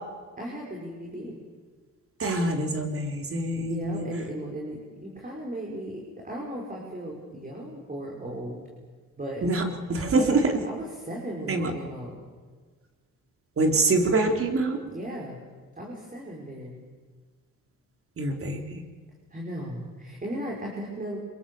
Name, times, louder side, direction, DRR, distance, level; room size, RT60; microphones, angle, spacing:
voice 1, 0.4-1.4 3.5-8.6 9.2-9.4 10.1-10.4 10.6-12.2 14.8-15.4 15.8-16.8 19.3-21.2, right 1 dB, 25° right, -1 dB, 5.7 m, -36 dB
voice 2, 2.2-4.0 9.4-9.6 9.9-10.5 11.5-11.7 13.6-14.8 18.2-18.6, right 2 dB, 45° right, 4 dB, 4.1 m, -25 dB
26.5 x 23.0 x 7.2 m, 1.5 s
cardioid pair, 90°, 30 cm